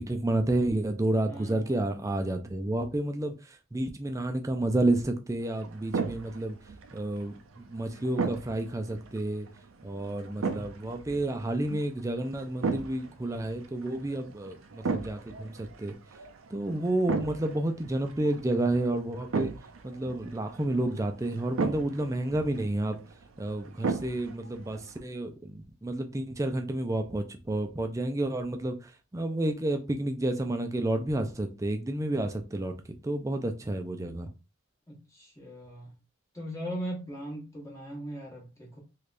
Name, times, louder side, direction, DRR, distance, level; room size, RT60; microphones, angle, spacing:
voice 1, 0.0-6.6 6.9-9.5 9.8-16.0 16.5-19.5 19.8-23.0 23.4-32.7 33.0-34.3, right 1 dB, 15° right, 0.4 m, -30 dB
voice 2, 1.3-1.7 14.1-14.2 34.9-36.0 36.3-38.8, equal, 15° left, 0.9 m, -39 dB
sound 1, 5.4-25.0, right 4 dB, 75° right, 0.5 m, -37 dB
3.4 x 3.1 x 2.4 m
head